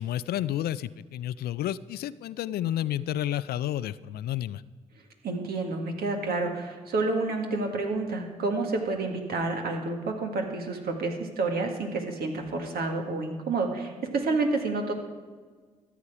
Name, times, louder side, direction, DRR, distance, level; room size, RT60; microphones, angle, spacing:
voice 1, 0.0-4.6, left 12 dB, 60° left, 17 dB, 0.4 m, -31 dB
voice 2, 5.2-14.9, right 3 dB, 60° right, 2 dB, 1.9 m, -29 dB
13.5 x 8.3 x 4.9 m, 1.5 s
hypercardioid pair, 45°, 18 cm